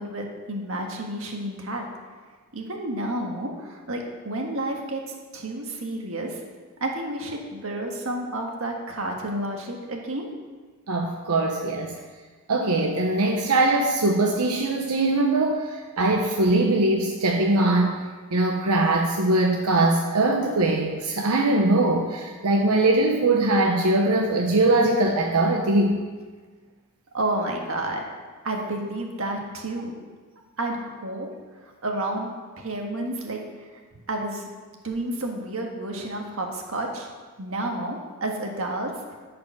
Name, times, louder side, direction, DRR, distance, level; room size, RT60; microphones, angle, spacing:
voice 1, 0.0-1.8 2.5-5.0 5.3-6.4 6.8-10.3 27.1-28.0 28.4-30.0 30.6-31.3 31.6-32.3 32.6-33.6 34.1-34.5 34.8-37.1 37.4-38.9, right 1 dB, 65° right, 2 dB, 1.6 m, -30 dB
voice 2, 10.9-11.9 12.5-18.0 18.3-26.0, right 2 dB, 90° right, 1 dB, 0.9 m, -21 dB
13.5 x 5.2 x 5.9 m, 1.4 s
head